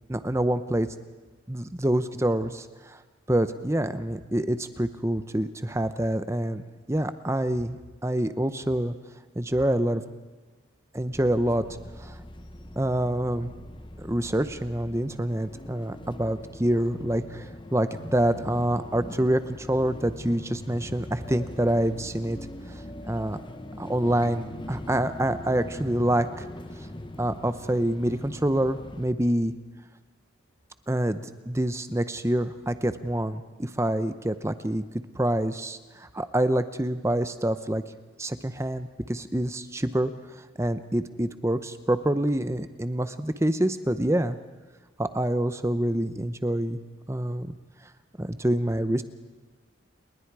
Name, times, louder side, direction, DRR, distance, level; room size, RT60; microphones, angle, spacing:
voice 1, 0.1-0.9 1.5-3.0 3.3-8.9 9.4-10.0 10.9-11.6 12.0-12.1 12.8-13.5 14.0-22.4 23.1-23.4 23.8-26.5 27.2-29.5 30.9-34.8 35.1-37.8 38.2-40.1 40.6-44.4 45.0-46.8 47.1-47.6 48.2-49.0, right 1 dB, 15° right, 11 dB, 0.8 m, -26 dB
sound 1, 11.1-29.1, left 1 dB, 25° left, 0.9 m, -41 dB
30.0 x 20.5 x 4.8 m, 1.3 s
head